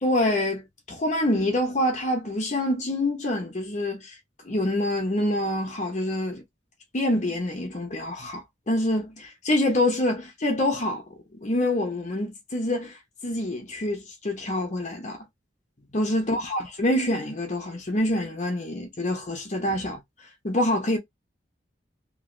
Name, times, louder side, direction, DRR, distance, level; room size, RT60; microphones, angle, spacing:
voice 1, 0.0-4.1 4.4-6.4 6.9-12.9 13.2-15.3 15.9-20.0 20.4-21.0, left 1 dB, 40° left, 1.0 m, -26 dB
2.9 x 2.7 x 2.6 m
head